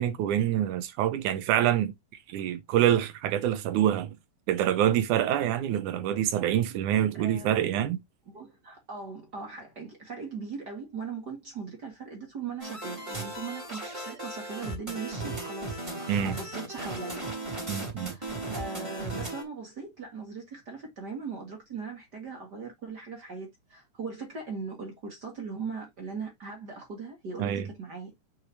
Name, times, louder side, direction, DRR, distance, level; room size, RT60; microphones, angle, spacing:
voice 1, 0.0-1.9 2.3-4.2 4.5-8.0 16.1-16.4 17.7-18.2 27.4-27.6, right 11 dB, 75° right, 2.2 m, -26 dB
voice 2, 7.2-7.8 8.3-17.2 18.1-28.1, right 5 dB, 40° right, 1.9 m, -39 dB
sound 1, 12.6-19.4, right 2 dB, 10° right, 3.0 m, -36 dB
6.7 x 6.4 x 2.7 m
omnidirectional pair, 3.8 m